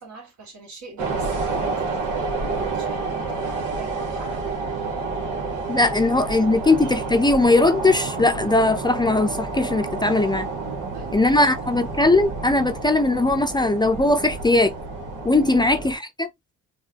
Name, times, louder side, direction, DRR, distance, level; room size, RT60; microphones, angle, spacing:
voice 1, 0.0-4.6 5.9-6.1 10.8-11.7 15.5-15.7, right 3 dB, 70° right, 2.7 m, -43 dB
sound 1, 1.0-15.9, right 3 dB, 85° right, 1.7 m, -29 dB
voice 2, 5.7-10.5 11.1-14.7 15.2-16.3, left 2 dB, 15° left, 0.6 m, -19 dB
4.6 x 2.5 x 2.9 m
cardioid pair, 90°, 30 cm